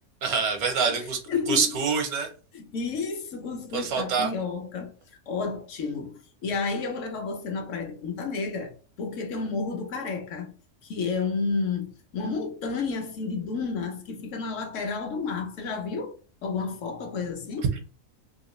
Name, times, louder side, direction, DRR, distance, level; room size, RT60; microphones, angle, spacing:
voice 1, 0.2-1.2 1.5-2.3 3.7-4.3 17.7-17.8, right 5 dB, 85° right, 1.3 m, -25 dB
voice 2, 1.0-1.7 2.5-4.9 5.3-8.7 9.0-10.5 10.8-16.2 16.4-17.7, left 4 dB, 65° left, 0.9 m, -31 dB
3.0 x 2.8 x 3.0 m
omnidirectional pair, 1.5 m